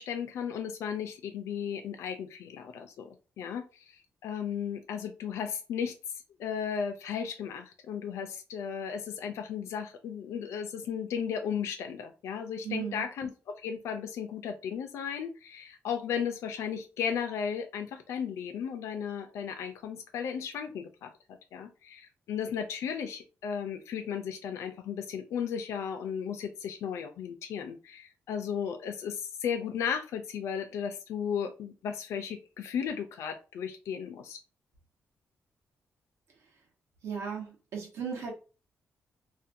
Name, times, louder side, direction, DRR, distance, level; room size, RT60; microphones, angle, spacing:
voice 1, 0.0-5.9 6.4-21.1 21.5-34.4, left 7 dB, 80° left, 0.4 m, -35 dB
voice 2, 12.6-13.1 37.0-38.3, right 6 dB, 70° right, 0.9 m, -36 dB
2.5 x 2.2 x 2.6 m
wide cardioid pair, 175°, 5 cm